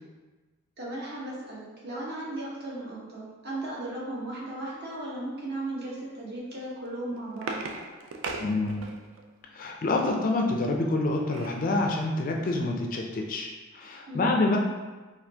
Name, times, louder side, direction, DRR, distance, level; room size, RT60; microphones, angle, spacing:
voice 1, 0.8-7.6 14.1-14.4, right 1 dB, 50° right, -6 dB, 1.0 m, -36 dB
sound 1, 6.8-9.2 10.8-11.7 12.2-12.3 12.5-12.8, right 3 dB, 65° right, 0.4 m, -38 dB
voice 2, 8.4-8.9 9.5-13.5 13.7-14.6, left 2 dB, 40° left, 1 dB, 0.4 m, -27 dB
4.2 x 2.4 x 2.7 m, 1.2 s
head